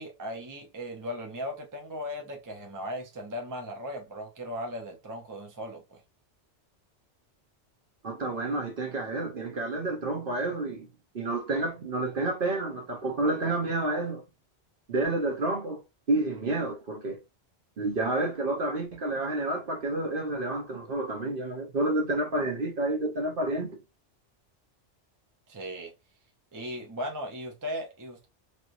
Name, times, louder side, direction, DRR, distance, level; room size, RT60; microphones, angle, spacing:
voice 1, 0.0-6.0 25.5-25.9 26.5-28.3, equal, 20° right, 0.7 m, -37 dB
voice 2, 8.0-10.9 11.1-14.2 14.9-15.8 16.1-17.2 17.8-23.8, right 2 dB, 50° right, 1.0 m, -29 dB
3.2 x 2.9 x 2.6 m
omnidirectional pair, 1.2 m